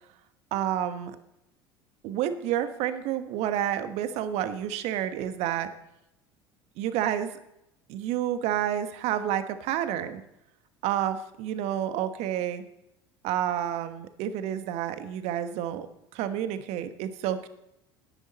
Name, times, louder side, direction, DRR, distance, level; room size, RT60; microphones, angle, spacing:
voice 1, 0.5-1.1 2.0-5.7 6.8-7.3 7.9-10.2 10.8-12.6 13.2-15.9 16.1-17.5, right 11 dB, 55° right, 11 dB, 1.2 m, -29 dB
17.5 x 10.5 x 4.1 m, 0.85 s
figure-of-eight pair, 70°, 13 cm